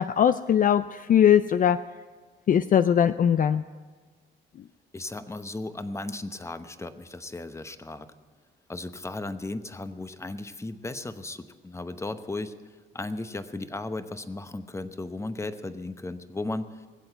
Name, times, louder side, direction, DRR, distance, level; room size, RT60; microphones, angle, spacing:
voice 1, 0.0-1.8 2.5-3.6, left 9 dB, 45° left, 12 dB, 0.4 m, -20 dB
voice 2, 4.9-8.1 8.7-12.5 12.9-16.8, left 2 dB, 15° left, 11 dB, 0.9 m, -35 dB
20.0 x 7.8 x 7.9 m, 1.4 s
cardioid pair, 90°, 20 cm